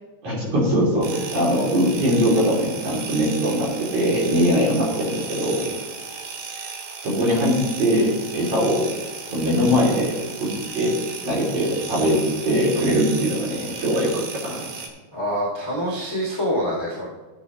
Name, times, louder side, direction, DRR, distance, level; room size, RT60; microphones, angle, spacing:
voice 1, 0.2-5.6 7.0-8.9 9.3-11.0 11.2-14.7, equal, 40° right, -5 dB, 3.5 m, -21 dB
sound 1, 1.0-14.9, right 5 dB, 65° right, 2.1 m, -35 dB
voice 2, 15.1-17.1, equal, 15° left, -5 dB, 0.8 m, -25 dB
15.5 x 8.3 x 3.1 m, 1.2 s
omnidirectional pair, 4.9 m